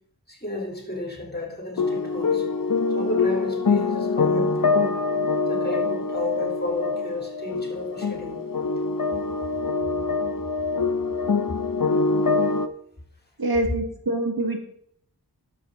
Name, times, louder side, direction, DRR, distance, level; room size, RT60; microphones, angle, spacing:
voice 1, 0.3-2.4 2.9-5.1 5.5-8.4, left 2 dB, 25° left, 0 dB, 3.6 m, -32 dB
sound 1, 1.8-12.7, left 4 dB, 55° left, 0.8 m, -24 dB
voice 2, 13.4-14.6, right 2 dB, 65° right, 4 dB, 1.8 m, -25 dB
11.0 x 7.7 x 3.9 m, 0.65 s
wide cardioid pair, 45°, 39 cm